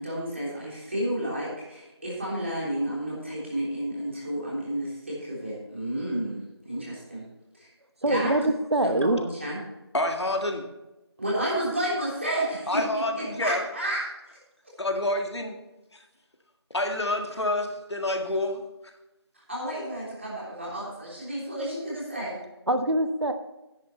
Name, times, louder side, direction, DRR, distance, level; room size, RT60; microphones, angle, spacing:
voice 1, 0.0-7.2 7.6-7.7 8.1-8.3 8.8-9.6 11.2-12.8 13.1-14.1 19.5-22.4, right 1 dB, 30° right, -6 dB, 3.3 m, -31 dB
voice 2, 8.0-9.3 22.7-23.3, right 1 dB, 70° right, 8 dB, 1.0 m, -24 dB
voice 3, 9.9-10.7 12.7-13.6 14.8-15.6 15.9-16.0 16.7-18.6, left 1 dB, 75° left, 4 dB, 1.9 m, -28 dB
10.0 x 9.0 x 4.3 m, 0.99 s
figure-of-eight pair, 180°, 14 cm